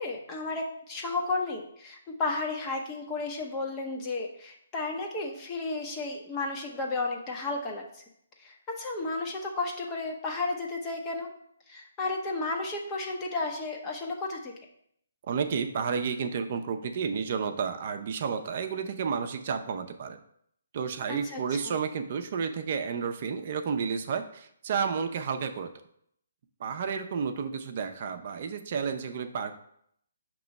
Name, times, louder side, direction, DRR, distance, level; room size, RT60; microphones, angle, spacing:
voice 1, 0.0-7.8 8.4-11.3 11.7-14.5 21.1-21.6, left 3 dB, 20° left, 1 dB, 0.9 m, -33 dB
voice 2, 15.3-20.2 20.7-25.7 26.6-29.5, right 6 dB, 45° right, 6 dB, 0.6 m, -31 dB
5.9 x 3.0 x 5.2 m, 0.70 s
hypercardioid pair, 155°, 0 cm